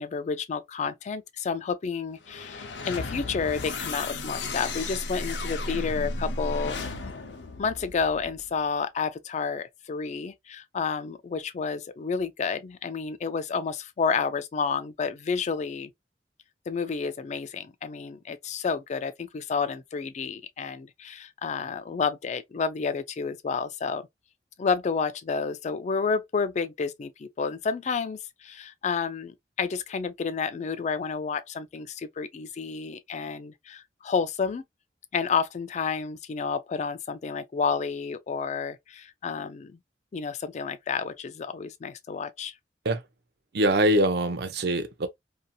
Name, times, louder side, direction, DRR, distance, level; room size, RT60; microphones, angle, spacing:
voice 1, 0.0-6.8 7.6-15.9 16.7-24.1 24.6-34.6 35.1-39.8 40.1-42.5, left 5 dB, 40° left, 0.3 m, -30 dB
sound 1, 2.2-8.5, left 2 dB, 85° left, 0.6 m, -34 dB
voice 2, 43.5-45.1, right 1 dB, 65° right, 0.6 m, -23 dB
2.7 x 2.7 x 2.3 m
head